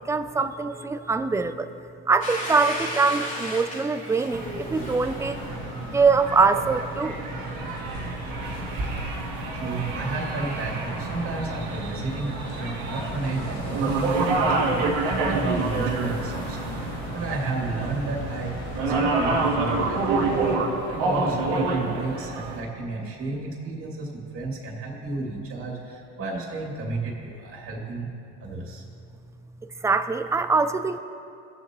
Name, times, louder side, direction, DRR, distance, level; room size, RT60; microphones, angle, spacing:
voice 1, 0.0-1.7 2.1-5.4 5.9-7.2 29.8-31.0, right 4 dB, 10° right, 10 dB, 0.4 m, -23 dB
Domestic sounds home sounds, 2.2-6.8, left 1 dB, 20° left, 2.8 m, -35 dB
sound 1, 4.3-22.6, right 3 dB, 70° right, 2.0 m, -28 dB
sound 2, 4.7-20.6, left 3 dB, 80° left, 1.8 m, -40 dB
voice 2, 9.5-16.7 17.1-20.4 20.9-28.1 28.4-28.8, right 3 dB, 35° right, -1 dB, 2.5 m, -32 dB
18.5 x 7.2 x 3.0 m, 2.5 s
supercardioid pair, 100°, 35 cm